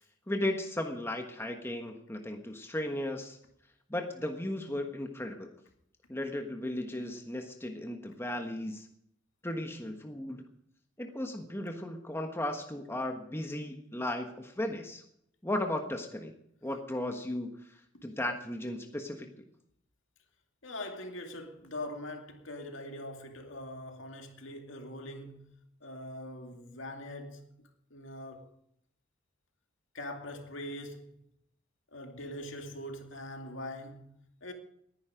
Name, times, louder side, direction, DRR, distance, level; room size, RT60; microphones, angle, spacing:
voice 1, 0.3-3.4 3.9-5.5 6.1-8.9 9.4-10.4 11.0-15.0 15.4-16.3 16.6-17.5 18.0-19.3, left 1 dB, 10° left, 1.3 m, -35 dB
voice 2, 20.6-25.5 25.8-27.5 27.9-28.5 29.9-31.1 31.9-34.5, left 1 dB, 70° left, 2.5 m, -42 dB
19.5 x 10.5 x 5.1 m
head